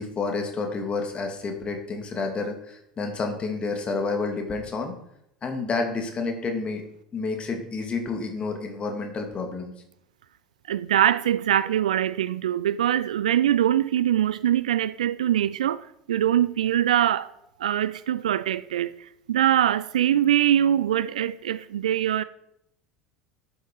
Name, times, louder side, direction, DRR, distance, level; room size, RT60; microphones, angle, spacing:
voice 1, 0.0-4.9 5.4-6.8 7.1-9.7, left 3 dB, 30° left, 2.8 m, -29 dB
voice 2, 10.7-17.3 17.6-18.9 19.3-22.2, right 11 dB, 70° right, 0.4 m, -23 dB
11.5 x 9.2 x 4.8 m
figure-of-eight pair, 70°, 4 cm